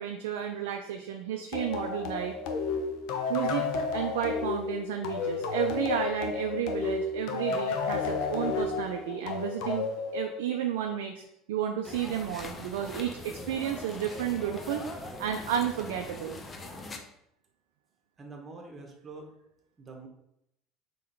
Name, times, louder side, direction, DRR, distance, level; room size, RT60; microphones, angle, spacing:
voice 1, 0.0-2.4 3.3-9.9 10.1-16.4, right 9 dB, 80° right, 4 dB, 0.4 m, -32 dB
sound 1, 1.5-10.8, left 4 dB, 65° left, 0.6 m, -32 dB
sound 2, 11.8-17.0, left 2 dB, 25° left, 0.7 m, -42 dB
voice 2, 18.2-19.3 19.8-20.1, right 3 dB, 30° right, 2 dB, 1.2 m, -45 dB
3.8 x 3.0 x 4.4 m, 0.79 s
hypercardioid pair, 80°, 0 cm